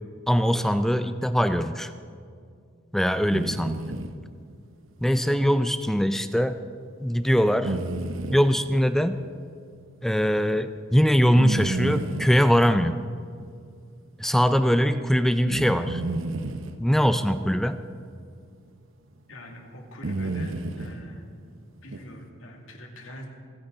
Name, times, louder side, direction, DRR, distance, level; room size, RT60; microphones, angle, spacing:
voice 1, 0.3-1.9 2.9-3.9 5.0-6.6 7.0-7.8 8.3-9.2 10.0-13.0 14.2-16.0 16.8-17.8, equal, ahead, 10 dB, 0.4 m, -22 dB
sound 1, 3.3-4.1 7.6-8.4 11.3-12.4 15.5-16.7 18.7-18.8 20.0-21.0 21.9-22.0, right 2 dB, 80° right, 0.9 m, -30 dB
voice 2, 19.3-21.3 21.8-23.3, equal, 85° left, 1 dB, 2.3 m, -43 dB
29.5 x 10.0 x 3.9 m, 2.2 s
head